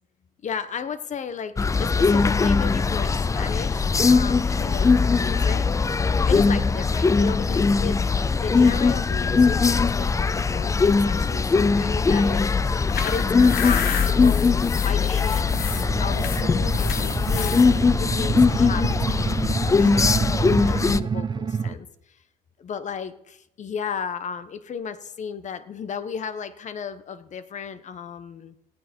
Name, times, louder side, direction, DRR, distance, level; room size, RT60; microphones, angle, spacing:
voice 1, 0.4-1.5 1.8-5.7 5.9-8.0 8.3-12.5 13.0-14.5 14.8-15.6 16.0-20.1 20.6-22.2 22.6-28.5, left 6 dB, 45° left, 13 dB, 1.4 m, -34 dB
sound 1, 1.6-21.0, left 4 dB, 20° left, 0.5 m, -20 dB
sound 2, 12.7-17.7, left 8 dB, 65° left, 2.1 m, -32 dB
sound 3, 15.5-21.7, right 6 dB, 25° right, 0.7 m, -28 dB
19.5 x 15.0 x 4.6 m, 0.82 s
cardioid pair, 110°, 17 cm